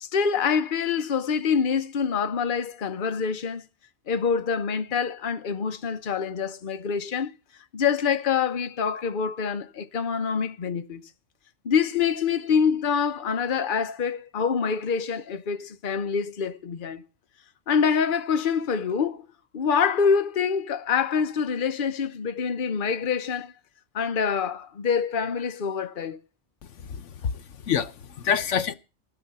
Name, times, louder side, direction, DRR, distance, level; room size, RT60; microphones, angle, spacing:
voice 1, 0.0-3.7 4.1-7.3 7.7-11.0 11.6-17.0 17.7-19.3 19.5-23.5 23.9-26.2, left 6 dB, 50° left, 1.0 m, -26 dB
voice 2, 26.6-28.7, left 7 dB, 80° left, 1.2 m, -28 dB
14.5 x 12.0 x 5.5 m
omnidirectional pair, 1.2 m